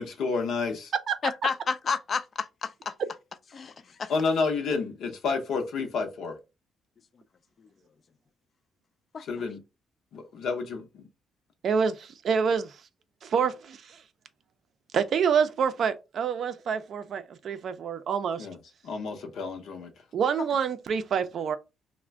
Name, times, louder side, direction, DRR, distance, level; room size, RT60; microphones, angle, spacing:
voice 1, 0.0-0.9 4.1-6.4 9.2-9.6 10.1-11.1 18.4-18.6 18.8-19.9, left 4 dB, 75° left, 0.7 m, -30 dB
voice 2, 1.2-2.9 3.5-4.1 9.1-9.2, left 5 dB, 45° left, 0.3 m, -31 dB
voice 3, 11.6-12.8 13.2-14.0 14.9-18.5 20.1-21.6, right 6 dB, 60° right, 0.4 m, -27 dB
2.4 x 2.1 x 3.3 m
cardioid pair, 90°, 0 cm